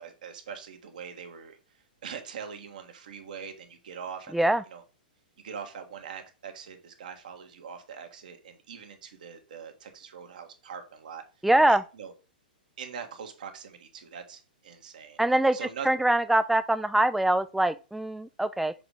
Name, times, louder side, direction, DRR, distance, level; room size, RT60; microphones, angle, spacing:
voice 1, 0.0-1.6 2.0-4.8 5.4-11.2 11.7-12.1 12.8-15.2 15.5-15.9, right 7 dB, 60° right, 1.4 m, -42 dB
voice 2, 11.4-11.8 15.2-15.6 15.9-18.7, right 1 dB, 5° right, 0.3 m, -23 dB
6.7 x 3.9 x 3.6 m
figure-of-eight pair, 110°, 5 cm